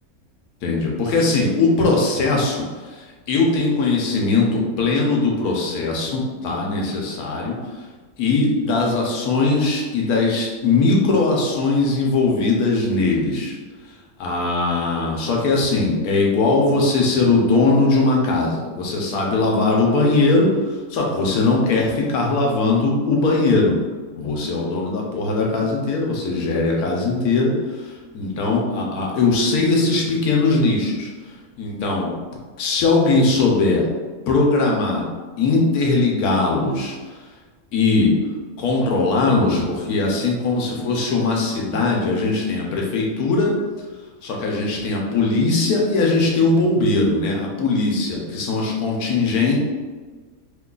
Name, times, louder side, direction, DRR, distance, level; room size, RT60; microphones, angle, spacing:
voice 1, 0.6-7.9 8.2-13.6 13.8-13.9 14.2-23.8 24.2-32.1 32.6-33.8 34.3-35.0 35.4-37.0 37.7-38.1 38.6-43.6 44.2-49.6, left 3 dB, 85° left, -1 dB, 1.2 m, -20 dB
3.1 x 2.3 x 3.8 m, 1.4 s
omnidirectional pair, 1.5 m